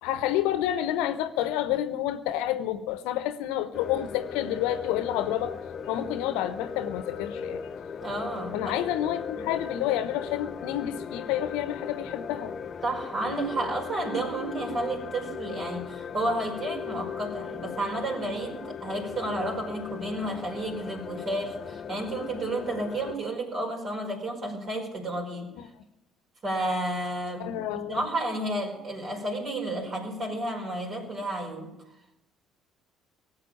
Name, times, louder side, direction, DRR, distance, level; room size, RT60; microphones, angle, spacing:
voice 1, 0.0-5.6 5.9-7.6 8.5-12.5 25.6-25.7 27.4-28.0, left 12 dB, 75° left, 0.9 m, -29 dB
sound 1, 3.7-23.2, left 6 dB, 45° left, 0.8 m, -38 dB
voice 2, 8.0-8.8 9.4-9.5 12.8-25.5 26.4-27.6 27.9-31.7, right 1 dB, 45° right, 4.9 m, -31 dB
18.0 x 8.0 x 8.7 m
hypercardioid pair, 55°, 0 cm